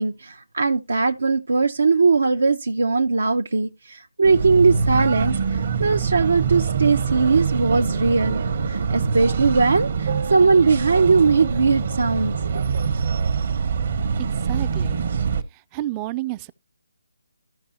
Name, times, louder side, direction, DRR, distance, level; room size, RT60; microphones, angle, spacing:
voice 1, 0.0-12.6, right 4 dB, 75° right, 0.5 m, -20 dB
sound 1, 4.2-15.4, right 5 dB, 55° right, 0.9 m, -24 dB
voice 2, 14.2-15.0 15.7-16.5, right 16 dB, 20° right, 0.4 m, -30 dB
14.0 x 5.4 x 2.8 m
figure-of-eight pair, 155°, 0 cm